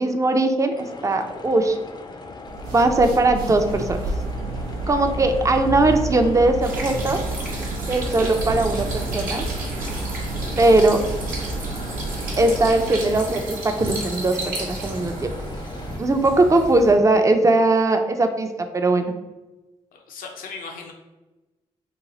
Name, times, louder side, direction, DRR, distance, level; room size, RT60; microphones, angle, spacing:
voice 1, 0.0-1.8 2.7-4.0 4.9-7.2 7.9-9.4 10.6-11.0 12.4-15.3 16.0-19.1, right 2 dB, 20° right, 6 dB, 0.5 m, -19 dB
sound 1, 0.7-16.0, left 3 dB, 30° left, 0.5 m, -40 dB
sound 2, 2.4-13.0, right 2 dB, 85° right, 0.4 m, -30 dB
sound 3, 6.6-16.9, right 1 dB, 70° right, 0.9 m, -33 dB
voice 2, 19.9-20.9, left 5 dB, 75° left, 2 dB, 0.6 m, -37 dB
3.0 x 2.2 x 3.9 m, 1.1 s
supercardioid pair, 45°, 15 cm